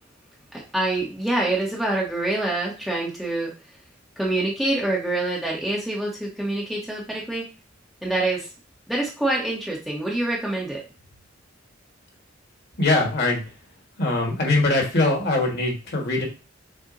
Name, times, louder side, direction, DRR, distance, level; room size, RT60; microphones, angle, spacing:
voice 1, 0.7-3.5 4.2-7.5 8.0-8.5 8.9-10.8, right 2 dB, ahead, -4 dB, 0.8 m, -26 dB
voice 2, 12.8-13.4 14.0-16.2, left 2 dB, 55° left, 1 dB, 1.5 m, -22 dB
6.4 x 2.1 x 3.8 m, 0.32 s
head